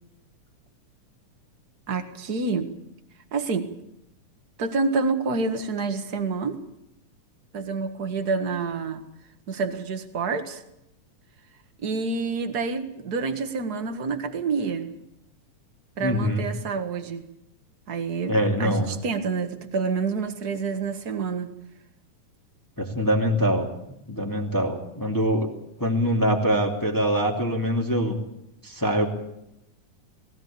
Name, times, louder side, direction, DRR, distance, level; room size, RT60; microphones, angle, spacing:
voice 1, 1.9-2.7 3.3-3.7 4.6-6.6 7.5-9.0 9.5-10.6 11.8-14.9 16.0-17.3 17.9-18.3 18.6-21.5, right 4 dB, 40° right, 7 dB, 1.7 m, -28 dB
voice 2, 16.0-16.4 18.3-19.0 22.8-23.7 24.1-25.5 25.8-28.2 28.6-29.1, equal, 5° left, 0 dB, 2.2 m, -23 dB
19.5 x 18.0 x 8.6 m, 0.84 s
omnidirectional pair, 3.5 m